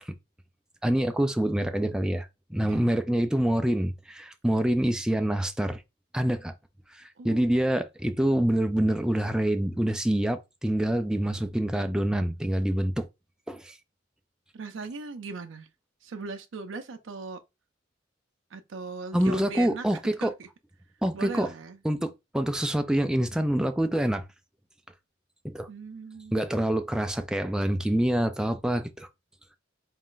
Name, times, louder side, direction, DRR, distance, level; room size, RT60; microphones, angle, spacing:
voice 1, 0.8-5.8 6.1-6.5 6.9-13.1 13.5-13.8 19.1-20.3 21.0-21.5 21.8-24.2 25.4-25.7 26.3-29.1, right 1 dB, 5° right, 0.3 m, -26 dB
voice 2, 2.6-2.9 7.2-7.8 14.5-15.7 16.0-17.4 18.5-20.5 21.1-21.8 25.7-26.4, right 4 dB, 65° right, 0.5 m, -39 dB
4.1 x 2.5 x 3.7 m
head